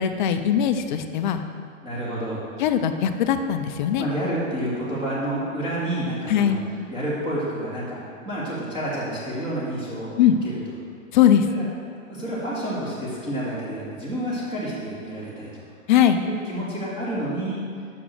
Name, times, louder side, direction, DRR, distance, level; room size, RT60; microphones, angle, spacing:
voice 1, 0.0-1.4 2.6-4.1 6.3-6.7 10.2-10.4 11.1-11.5 15.9-16.2, left 9 dB, 40° left, 8 dB, 0.4 m, -20 dB
voice 2, 1.8-2.4 4.0-6.6 6.9-10.1 11.5-11.7 12.1-15.6 16.2-17.6, right 1 dB, 10° right, -9 dB, 2.0 m, -29 dB
6.0 x 5.9 x 6.5 m, 2.2 s
hypercardioid pair, 135°, 40 cm